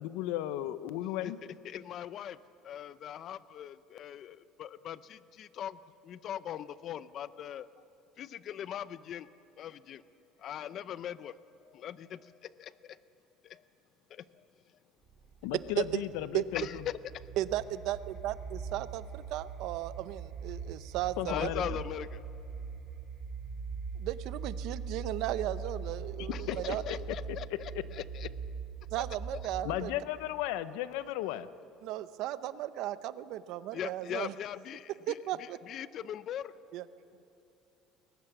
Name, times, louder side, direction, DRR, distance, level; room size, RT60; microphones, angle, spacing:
voice 1, 0.0-1.4 15.4-16.8 21.2-21.8 26.2-26.8 27.1-27.8 29.6-31.5, left 13 dB, 85° left, 14 dB, 0.7 m, -35 dB
voice 2, 1.6-2.4 2.6-7.7 8.2-9.3 9.6-10.0 10.4-11.4 11.6-13.0 13.4-13.6 14.1-14.2 16.5-17.0 21.3-22.2 26.3-26.4 26.9-28.3 29.3-29.4 33.7-35.2 35.7-36.5, left 10 dB, 45° left, 16 dB, 0.6 m, -40 dB
sound 1, 15.0-29.9, right 5 dB, 40° right, 5.7 m, -42 dB
voice 3, 17.4-21.5 23.9-27.0 28.9-29.9 31.8-34.3 35.1-35.6 36.7-36.9, right 13 dB, 65° right, 14 dB, 0.7 m, -35 dB
21.5 x 20.0 x 6.0 m, 2.9 s
cardioid pair, 135°, 0 cm